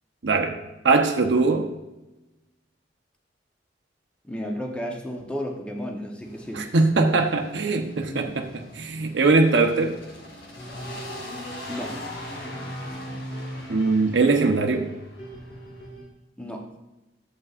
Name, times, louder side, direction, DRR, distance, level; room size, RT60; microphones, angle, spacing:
voice 1, 0.2-0.6 0.8-1.7 6.5-8.5 8.7-10.0 13.7-14.9, right 3 dB, 80° right, 3 dB, 0.7 m, -21 dB
voice 2, 4.2-6.7 8.1-8.3 11.7-11.9 16.4-16.7, equal, 5° left, 0 dB, 0.8 m, -33 dB
sound 1, 6.2-15.9, left 1 dB, 85° left, 2.3 m, -41 dB
sound 2, 10.5-16.1, right 1 dB, 60° left, 1.9 m, -40 dB
11.0 x 7.9 x 2.4 m, 1.0 s
head